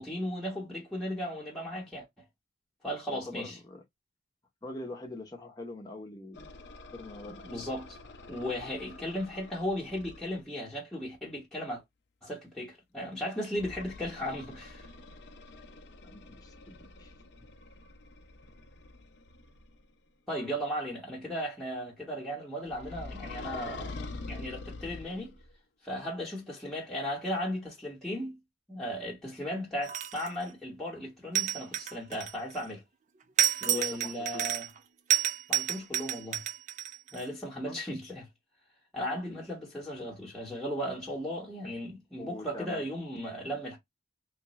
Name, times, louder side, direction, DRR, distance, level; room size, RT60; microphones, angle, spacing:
voice 1, 0.0-2.1 2.8-3.6 7.4-8.0 8.3-11.8 12.2-14.9 20.3-23.9 24.2-25.3 25.8-28.4 28.7-32.8 33.6-34.7 35.5-36.4 37.1-38.3 38.9-43.8, equal, ahead, 1.1 m, -36 dB
voice 2, 3.1-3.8 4.6-6.5 6.9-7.4 16.0-17.1 17.4-17.6 33.6-34.5 37.6-37.8 42.2-42.8, left 2 dB, 20° left, 0.9 m, -43 dB
sound 1, 6.3-10.4 13.5-19.8 22.7-25.5, left 3 dB, 60° left, 0.6 m, -46 dB
sound 2, 29.8-30.4 31.4-32.6 33.4-34.8 35.1-37.2, right 11 dB, 40° right, 0.4 m, -30 dB
3.2 x 2.3 x 3.0 m
head